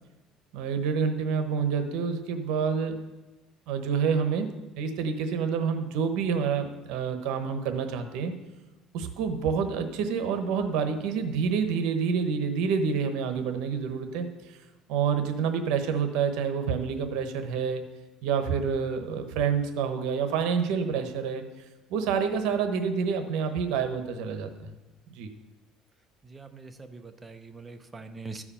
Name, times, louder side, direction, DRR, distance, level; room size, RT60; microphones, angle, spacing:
voice 1, 0.5-3.0 3.7-8.3 8.9-14.6 14.9-17.8 18.2-21.5 21.9-24.8 25.1-25.3, right 6 dB, 75° right, 7 dB, 1.0 m, -28 dB
voice 2, 26.2-28.4, right 3 dB, 15° right, 7 dB, 0.7 m, -43 dB
13.5 x 4.9 x 5.6 m, 1.1 s
cardioid pair, 135°, 0 cm